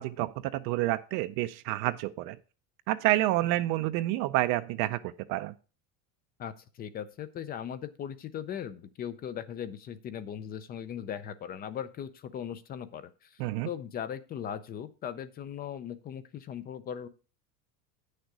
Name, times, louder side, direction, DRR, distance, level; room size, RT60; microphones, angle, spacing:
voice 1, 0.0-2.4 2.9-5.5 13.4-13.7, right 16 dB, 55° right, 11 dB, 0.5 m, -29 dB
voice 2, 6.4-17.1, left 9 dB, 25° left, 14 dB, 0.4 m, -39 dB
9.2 x 6.6 x 4.7 m, 0.35 s
cardioid pair, 155°, 42 cm